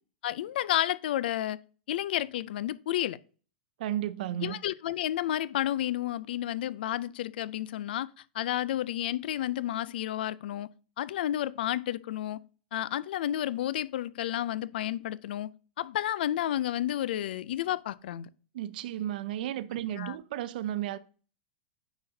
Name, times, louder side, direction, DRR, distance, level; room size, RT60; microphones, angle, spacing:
voice 1, 0.2-1.6 1.9-3.2 4.4-8.1 8.3-10.7 11.0-12.4 12.7-15.5 15.8-18.3 19.9-20.2, left 12 dB, 70° left, 0.4 m, -31 dB
voice 2, 3.8-4.6 18.5-21.0, right 12 dB, 60° right, 0.4 m, -33 dB
9.5 x 4.0 x 2.7 m
supercardioid pair, 155°, 5 cm